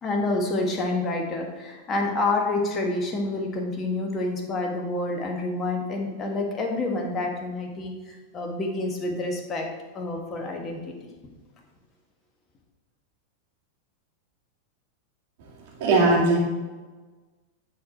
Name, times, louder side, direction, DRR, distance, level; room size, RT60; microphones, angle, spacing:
voice 1, 0.0-9.7 9.9-10.9, left 2 dB, 25° left, 2 dB, 1.5 m, -28 dB
voice 2, 15.8-16.4, right 2 dB, 50° right, -3 dB, 2.6 m, -19 dB
10.0 x 4.8 x 4.4 m, 1.3 s
figure-of-eight pair, 90°, 0 cm